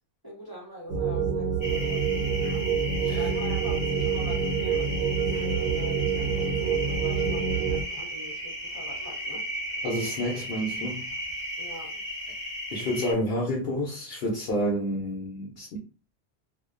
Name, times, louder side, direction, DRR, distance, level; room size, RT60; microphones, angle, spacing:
voice 1, 0.2-2.7 3.1-9.4 11.6-12.0, equal, 25° right, 0.7 m, -42 dB
sound 1, 0.9-7.8, right 6 dB, 75° right, 0.8 m, -27 dB
sound 2, 1.6-13.1, equal, 30° left, 0.6 m, -35 dB
voice 2, 9.8-11.1 12.7-15.8, equal, 65° left, 0.8 m, -29 dB
2.4 x 2.2 x 2.3 m
omnidirectional pair, 1.1 m